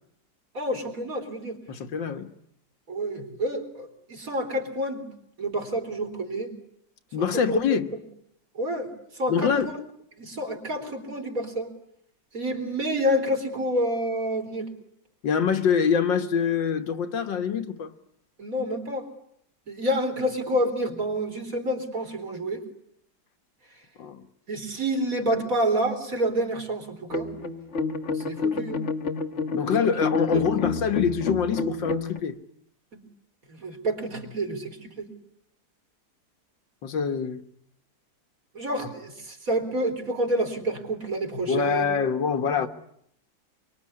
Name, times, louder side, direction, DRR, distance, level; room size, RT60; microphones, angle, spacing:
voice 1, 0.5-1.6 2.9-5.1 5.4-6.5 7.2-7.6 8.5-8.9 9.1-9.7 10.2-11.7 12.3-14.7 18.4-19.1 19.7-22.6 24.5-27.3 28.1-28.8 29.8-29.9 30.3-30.7 32.9-33.1 33.5-35.1 38.5-41.9, right 1 dB, 50° right, 4.2 m, -28 dB
voice 2, 1.7-2.3 7.1-7.9 9.3-9.7 15.2-17.9 24.0-24.3 29.5-32.4 36.8-37.4 41.5-42.7, left 6 dB, 85° left, 2.1 m, -25 dB
sound 1, 27.1-32.2, left 4 dB, 40° left, 1.5 m, -29 dB
25.0 x 24.0 x 9.8 m
omnidirectional pair, 2.0 m